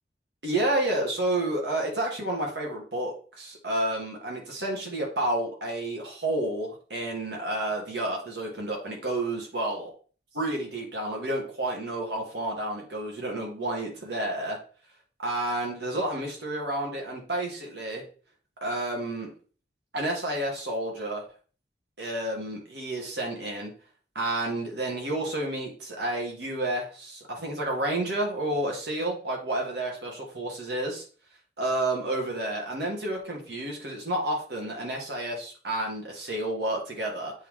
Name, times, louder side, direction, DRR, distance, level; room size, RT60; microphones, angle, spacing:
voice 1, 0.4-9.9 10.3-14.6 15.2-18.0 18.6-19.3 19.9-21.2 22.0-23.7 24.2-31.0 31.6-37.3, right 1 dB, 65° right, -1 dB, 2.1 m, -30 dB
7.8 x 3.2 x 3.8 m, 0.41 s
head